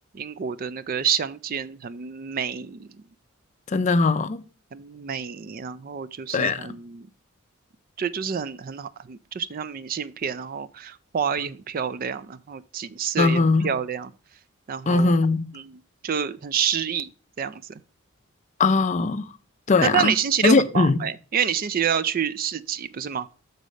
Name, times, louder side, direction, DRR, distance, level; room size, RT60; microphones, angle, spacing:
voice 1, 0.1-2.9 4.7-7.1 8.0-14.1 14.7-15.1 15.5-15.8 16.0-17.1 17.4-17.8 19.8-23.3, right 7 dB, 45° right, 0.4 m, -28 dB
voice 2, 3.7-4.4 6.3-6.6 13.2-13.7 14.9-15.5 18.6-19.3 19.7-20.1 20.4-21.0, left 3 dB, 35° left, 0.4 m, -20 dB
6.5 x 4.0 x 6.3 m
head